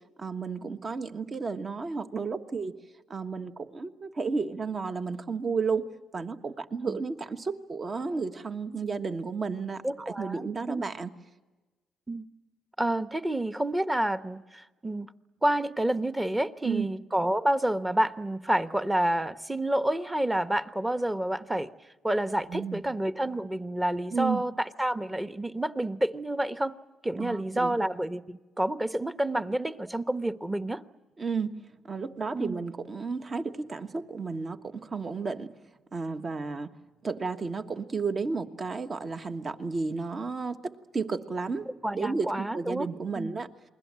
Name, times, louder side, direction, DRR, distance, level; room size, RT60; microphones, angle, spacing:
voice 1, 0.2-2.7 3.1-11.1 16.6-16.9 22.5-22.8 24.1-24.4 27.2-27.8 31.2-31.6 31.8-35.5 35.9-36.7 37.0-41.7 41.9-43.5, right 4 dB, 35° right, 8 dB, 1.4 m, -32 dB
voice 2, 9.8-10.8 12.1-12.3 12.8-15.1 15.4-21.7 22.0-26.7 27.0-30.8 32.3-32.6 41.8-42.9 43.1-43.4, right 1 dB, 10° right, 11 dB, 1.1 m, -29 dB
29.0 x 21.5 x 7.6 m, 1.2 s
cardioid pair, 90°, 0 cm